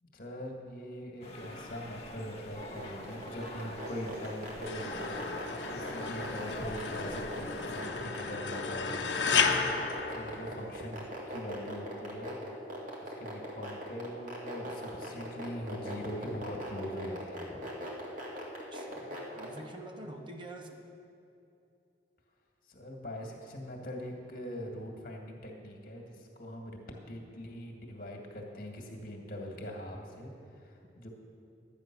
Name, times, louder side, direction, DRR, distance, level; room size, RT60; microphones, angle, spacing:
voice 1, 0.0-5.0 5.5-12.4 13.0-17.7 22.7-31.1, equal, 55° left, 1 dB, 1.8 m, -42 dB
sound 1, 1.2-7.8, left 1 dB, 35° left, 1.2 m, -45 dB
sound 2, 2.6-19.6, equal, 50° right, 2.2 m, -40 dB
sound 3, 4.7-10.9, left 5 dB, 85° left, 0.9 m, -33 dB
voice 2, 18.7-20.8, right 1 dB, 25° right, 2 dB, 0.9 m, -46 dB
12.0 x 9.4 x 6.1 m, 2.7 s
head